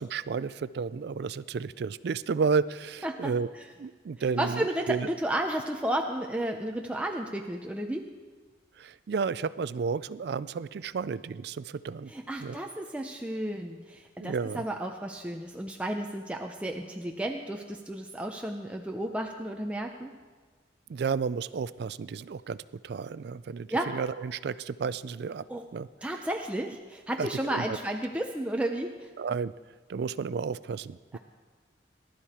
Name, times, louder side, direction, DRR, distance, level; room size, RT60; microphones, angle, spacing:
voice 1, 0.0-3.5 3.8-5.1 8.8-12.1 12.4-12.6 14.2-14.6 20.9-23.7 23.9-25.5 25.7-25.9 27.2-27.8 29.2-29.5 29.9-31.2, right 5 dB, 60° right, 17 dB, 0.3 m, -32 dB
voice 2, 4.4-8.1 12.1-20.2 23.7-23.9 25.5-25.7 26.0-29.1, right 1 dB, 5° right, 2 dB, 0.6 m, -32 dB
19.5 x 12.0 x 4.3 m, 1.4 s
head